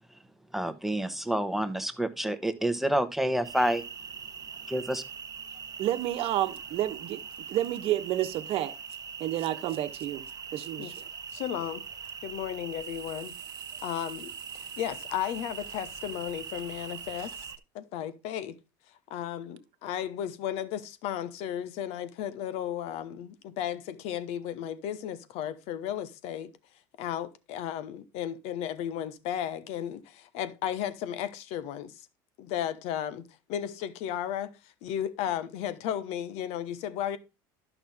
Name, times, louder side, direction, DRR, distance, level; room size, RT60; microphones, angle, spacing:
voice 1, 0.5-3.8 4.7-5.0, right 1 dB, ahead, 1.1 m, -28 dB
sound 1, 3.4-17.6, right 6 dB, 35° right, 1.0 m, -42 dB
voice 2, 5.8-7.2 7.5-8.7 9.2-11.1, right 13 dB, 60° right, 1.1 m, -30 dB
voice 3, 11.3-11.8 12.2-13.3 13.8-17.5 17.7-18.6 19.1-26.5 27.0-32.1 32.4-33.2 33.5-34.5 34.8-37.2, left 10 dB, 65° left, 1.0 m, -34 dB
sound 2, 12.7-17.5, right 12 dB, 90° right, 0.9 m, -52 dB
11.5 x 6.0 x 3.5 m
supercardioid pair, 90°, 11 cm